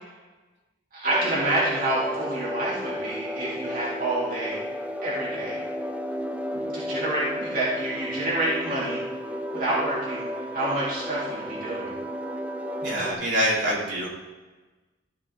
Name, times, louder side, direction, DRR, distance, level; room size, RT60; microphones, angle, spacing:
voice 1, 0.9-4.6 5.0-5.6 6.5-9.0 9.5-10.3 10.5-12.0, right 1 dB, 50° right, -7 dB, 2.4 m, -28 dB
sound 1, 1.0-13.1, equal, 5° right, 0.5 m, -33 dB
voice 2, 12.8-14.1, right 1 dB, 75° right, -6 dB, 3.0 m, -25 dB
13.5 x 5.4 x 3.5 m, 1.2 s
head